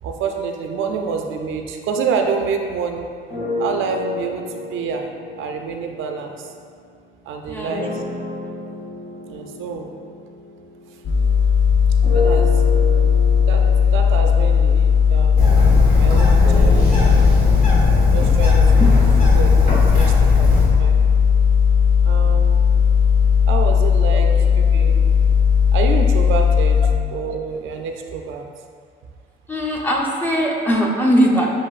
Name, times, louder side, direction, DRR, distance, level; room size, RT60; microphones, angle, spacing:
voice 1, 0.0-3.1 3.6-4.5 4.7-5.0 5.4-6.5 7.3-8.0 9.3-9.9 12.1-12.5 13.4-13.7 13.9-15.4 15.9-17.3 18.1-21.0 22.0-22.6 23.5-25.0 25.7-26.8 27.1-28.5, right 5 dB, 80° right, 3 dB, 0.4 m, -27 dB
sound 1, 3.3-6.9 7.7-11.4 12.0-20.0, left 2 dB, 85° left, 1.0 m, -31 dB
voice 2, 7.5-8.1 24.1-24.2 29.5-31.5, equal, 10° left, -1 dB, 0.7 m, -20 dB
sound 2, 11.0-26.9, left 7 dB, 70° left, 0.7 m, -16 dB
Bird, 15.4-20.7, left 1 dB, 45° left, 1.4 m, -19 dB
7.4 x 2.6 x 2.4 m, 2.1 s
cardioid pair, 90°, 20 cm